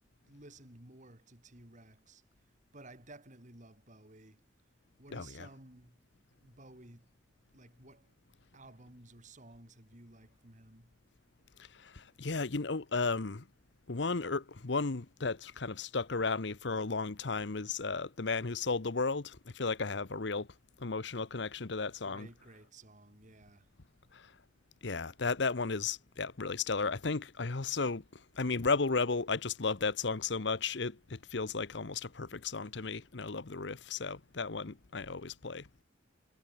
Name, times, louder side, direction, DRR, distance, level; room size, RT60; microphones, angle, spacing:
voice 1, 0.3-2.2 2.7-4.5 5.0-6.0 6.4-7.1 7.5-8.2 8.5-11.0 22.0-23.7, right 2 dB, 40° right, 3.5 m, -55 dB
voice 2, 11.8-13.4 13.9-20.5 20.8-22.3 24.8-28.0 28.4-35.7, left 4 dB, 65° left, 0.9 m, -34 dB
head